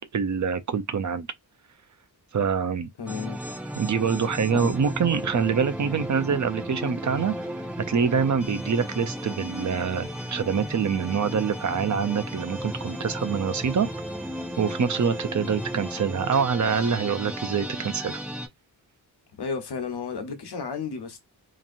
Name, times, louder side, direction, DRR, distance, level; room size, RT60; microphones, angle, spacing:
voice 1, 0.1-1.3 2.3-2.9 3.8-7.3 7.9-13.9 14.6-18.2, right 6 dB, 50° right, 0.6 m, -25 dB
voice 2, 3.0-3.4 4.5-4.8 19.3-21.2, left 5 dB, 80° left, 1.0 m, -33 dB
sound 1, 3.1-18.5, equal, 5° right, 1.1 m, -34 dB
3.0 x 2.6 x 2.5 m
wide cardioid pair, 115°, 39 cm